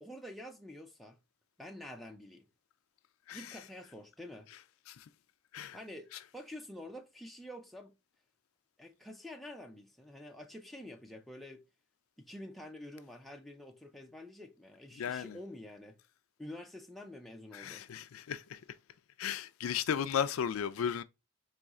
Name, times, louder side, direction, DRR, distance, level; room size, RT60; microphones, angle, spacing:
voice 1, 0.0-1.2 1.6-2.5 3.3-4.5 5.7-8.0 8.8-11.6 12.2-16.0 16.4-17.9, left 1 dB, ahead, 0.5 m, -48 dB
voice 2, 15.0-15.4 17.5-18.6 19.2-21.0, left 8 dB, 85° left, 0.4 m, -35 dB
4.2 x 3.1 x 3.6 m
head